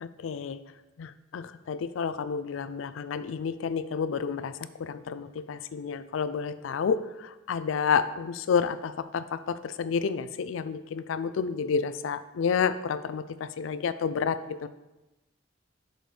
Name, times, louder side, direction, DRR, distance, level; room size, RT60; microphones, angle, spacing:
voice 1, 0.0-0.6 1.0-1.1 1.3-4.5 4.8-7.0 7.5-9.2 9.8-13.2 13.6-14.7, left 6 dB, 85° left, 14 dB, 0.4 m, -29 dB
6.6 x 6.2 x 3.3 m, 1.0 s
head